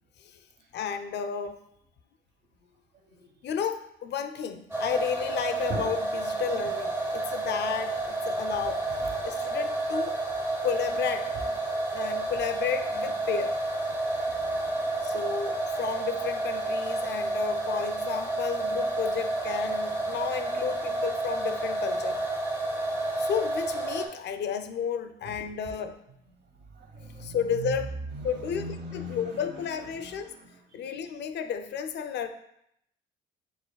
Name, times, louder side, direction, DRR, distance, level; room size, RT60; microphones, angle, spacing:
voice 1, 0.7-1.6 3.4-8.9 9.2-10.2 10.6-11.3 11.9-13.6 15.0-22.2 23.2-26.0 27.2-27.9 28.2-30.3 30.7-32.3, left 7 dB, 60° left, 9 dB, 0.4 m, -32 dB
sound 1, 4.7-24.1, right 2 dB, 10° right, 0.8 m, -30 dB
voice 2, 8.9-9.3 11.3-11.5 13.9-15.2 25.2-25.4 26.6-27.8 28.1-31.0, right 2 dB, 60° right, 2 dB, 0.9 m, -41 dB
4.9 x 4.1 x 2.2 m, 0.75 s
cardioid pair, 90°, 20 cm